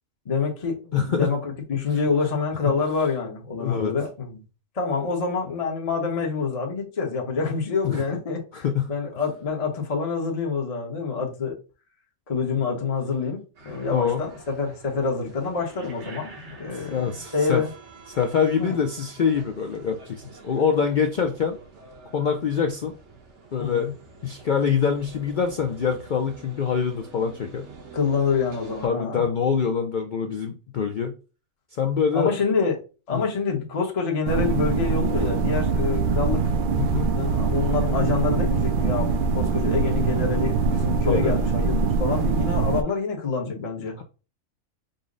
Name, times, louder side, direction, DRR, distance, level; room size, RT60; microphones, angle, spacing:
voice 1, 0.2-4.4 4.7-11.6 12.3-17.7 18.6-18.8 23.6-23.9 27.9-29.3 32.1-32.8 33.1-36.4 37.1-43.9, left 5 dB, 30° left, 0.9 m, -27 dB
voice 2, 0.9-1.3 3.6-3.9 7.8-8.0 8.5-8.9 13.9-14.2 16.9-17.6 18.1-21.6 22.1-22.9 23.5-23.9 24.2-27.7 28.8-31.1 31.8-32.3 33.1-33.3 36.8-37.1 41.1-41.3 44.0-44.1, left 6 dB, 70° left, 0.4 m, -24 dB
sound 1, 13.5-28.9, right 3 dB, 60° right, 1.2 m, -47 dB
sound 2, 34.3-42.8, right 5 dB, 75° right, 0.4 m, -23 dB
5.2 x 2.1 x 3.7 m
omnidirectional pair, 1.4 m